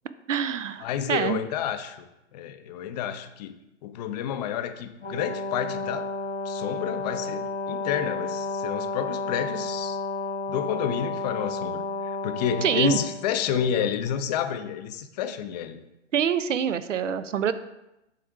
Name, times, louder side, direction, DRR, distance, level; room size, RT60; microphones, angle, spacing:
voice 1, 0.3-1.4 12.6-13.0 16.1-17.5, right 8 dB, 80° right, 14 dB, 0.6 m, -25 dB
voice 2, 0.8-6.1 6.4-10.0 10.5-15.8, left 9 dB, 35° left, 10 dB, 0.5 m, -30 dB
Brass instrument, 5.0-13.7, left 3 dB, 90° left, 1.8 m, -32 dB
7.7 x 3.3 x 4.7 m, 0.91 s
figure-of-eight pair, 115°, 37 cm